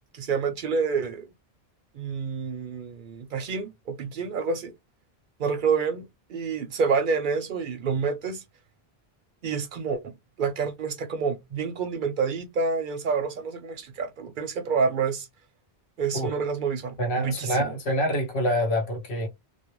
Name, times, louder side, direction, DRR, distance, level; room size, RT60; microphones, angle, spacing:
voice 1, 0.1-1.3 1.9-4.7 5.4-6.0 6.3-8.4 9.4-10.1 10.4-15.3 16.0-17.7, right 5 dB, 60° right, 0.6 m, -28 dB
voice 2, 17.0-19.3, equal, 85° left, 1.2 m, -26 dB
2.3 x 2.1 x 3.0 m
omnidirectional pair, 1.1 m